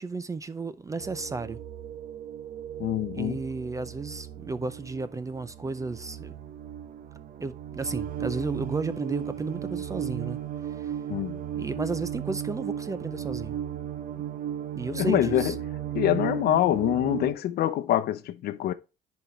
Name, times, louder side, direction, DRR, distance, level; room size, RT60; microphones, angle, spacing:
voice 1, 0.0-1.6 3.1-6.3 7.4-10.4 10.7-10.9 11.5-13.6 14.8-15.6, right 3 dB, 20° right, 0.5 m, -33 dB
sound 1, 1.0-17.3, right 10 dB, 55° right, 0.9 m, -35 dB
voice 2, 2.8-3.4 11.1-11.3 14.9-15.6 15.9-18.7, left 12 dB, 70° left, 0.8 m, -25 dB
10.5 x 4.5 x 3.2 m
cardioid pair, 110°, 17 cm